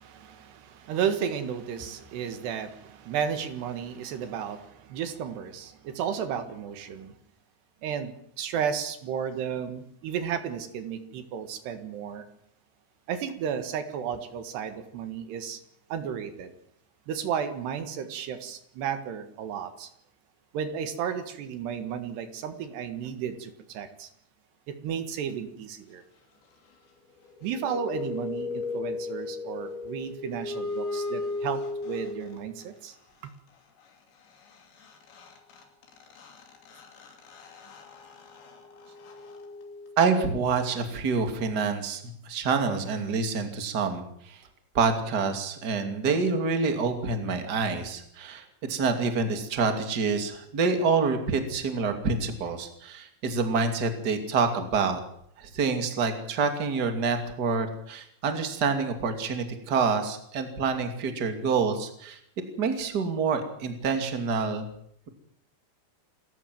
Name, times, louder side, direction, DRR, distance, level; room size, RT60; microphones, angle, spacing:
voice 1, 0.0-7.2 7.8-12.3 13.1-15.6 15.9-16.5 17.1-19.9 20.5-24.1 24.7-26.0 27.4-33.0 33.2-33.3, right 8 dB, 75° right, 9 dB, 3.8 m, -33 dB
sound 1, 27.3-32.6 34.5-34.6 34.8-40.3, left 3 dB, 90° left, 5.4 m, -36 dB
voice 2, 40.0-44.4 44.7-55.0 55.4-62.2 62.6-64.6, right 4 dB, 30° right, 6 dB, 2.3 m, -27 dB
28.0 x 14.0 x 7.7 m, 0.69 s
omnidirectional pair, 5.0 m